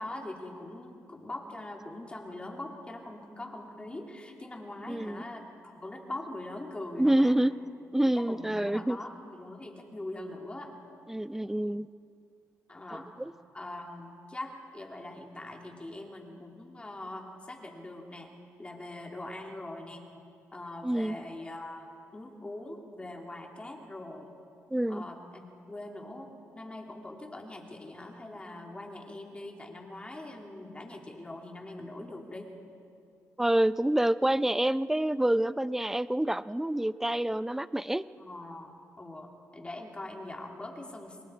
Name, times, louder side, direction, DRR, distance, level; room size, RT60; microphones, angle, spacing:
voice 1, 0.0-7.4 8.0-10.7 12.7-13.1 13.5-18.3 18.6-20.1 20.5-24.3 24.9-32.5 38.2-41.2, left 1 dB, 20° left, 1 dB, 3.0 m, -42 dB
voice 2, 4.9-5.2 7.0-7.5 7.9-9.0 11.1-11.9 12.9-13.3 20.8-21.2 24.7-25.0 33.4-38.0, right 1 dB, 5° right, 15 dB, 0.5 m, -27 dB
28.5 x 22.0 x 4.7 m, 2.5 s
cardioid pair, 95°, 6 cm